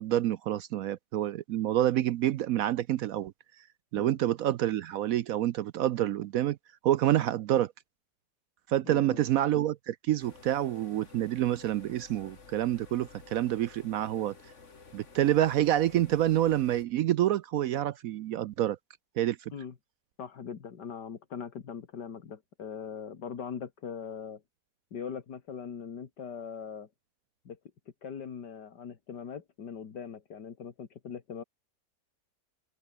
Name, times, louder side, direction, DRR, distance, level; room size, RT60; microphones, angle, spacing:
voice 1, 0.0-3.3 3.9-6.6 6.8-7.7 8.7-14.3 14.9-18.8 19.2-19.4, right 12 dB, 70° right, 0.8 m, -27 dB
voice 2, 8.8-9.2 19.5-19.7 20.2-24.4 24.9-26.9 27.5-27.6 28.0-31.4, left 7 dB, 75° left, 2.4 m, -41 dB
sound 1, 10.2-16.9, left 4 dB, 45° left, 2.5 m, -53 dB
omnidirectional pair, 1.8 m